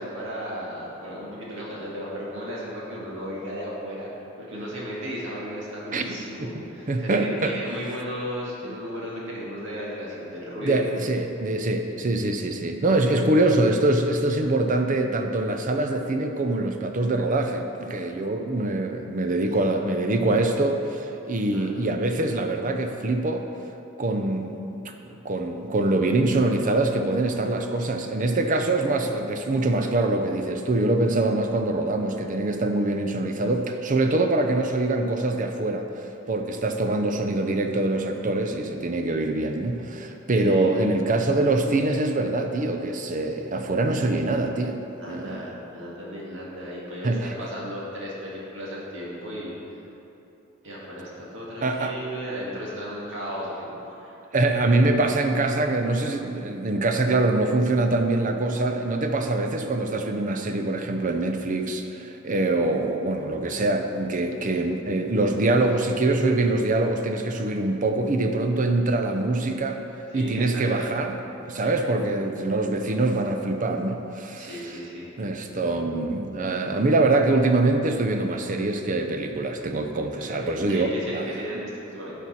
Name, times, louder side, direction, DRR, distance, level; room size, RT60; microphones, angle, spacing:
voice 1, 0.0-4.1 4.4-10.9 21.5-21.7 40.5-40.7 45.0-49.5 50.6-54.1 70.1-70.8 71.6-71.9 74.4-75.1 80.2-82.1, equal, 65° right, -5 dB, 2.0 m, -35 dB
voice 2, 5.9-6.5 6.9-7.6 10.6-23.4 24.0-35.9 36.3-44.8 45.1-45.5 47.0-47.3 51.6-51.9 54.3-69.8 70.1-71.2 71.4-74.8 75.2-81.6, right 2 dB, 40° right, 5 dB, 0.6 m, -24 dB
11.0 x 5.4 x 4.3 m, 2.9 s
head